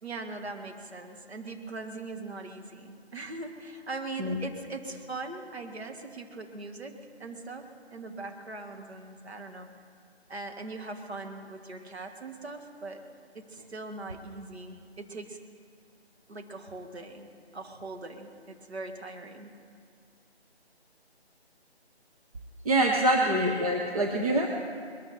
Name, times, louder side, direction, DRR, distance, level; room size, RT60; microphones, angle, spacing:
voice 1, 0.0-9.7 10.3-13.0 13.3-15.4 16.3-19.5 23.1-23.4, right 3 dB, 75° right, 4 dB, 2.0 m, -41 dB
voice 2, 22.6-24.5, right 1 dB, 35° right, 0 dB, 1.0 m, -25 dB
21.0 x 13.0 x 4.4 m, 2.3 s
figure-of-eight pair, 170°, 33 cm